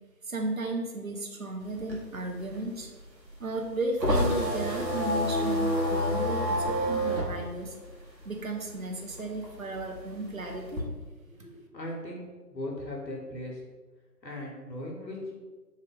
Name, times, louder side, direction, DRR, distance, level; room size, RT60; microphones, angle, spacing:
voice 1, 0.2-2.9 3.4-7.8 8.2-10.8, right 2 dB, 55° right, 3 dB, 0.6 m, -34 dB
sound 1, 1.6-8.7 9.0-10.8, equal, 85° right, 1.1 m, -29 dB
voice 2, 11.3-13.6 14.2-15.4, left 1 dB, 80° left, -1 dB, 1.2 m, -38 dB
3.2 x 2.3 x 3.6 m, 1.3 s
figure-of-eight pair, 160°, 50 cm